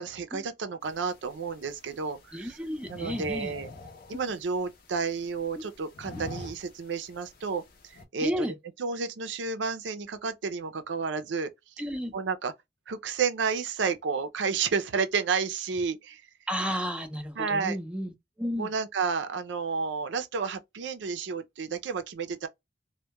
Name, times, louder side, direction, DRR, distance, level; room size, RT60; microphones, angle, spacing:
voice 1, 0.0-2.6 2.9-3.7 4.1-8.5 8.8-11.5 11.8-11.9 12.1-12.5 12.9-16.2 17.4-17.8 18.6-22.5, right 5 dB, 80° right, 0.5 m, -31 dB
sound 1, 0.8-8.1, left 2 dB, 55° left, 0.6 m, -47 dB
voice 2, 2.3-3.5 5.6-5.7 8.2-8.6 11.8-12.1 16.5-18.1 18.4-18.7, equal, 5° right, 0.4 m, -32 dB
2.2 x 2.1 x 2.8 m
head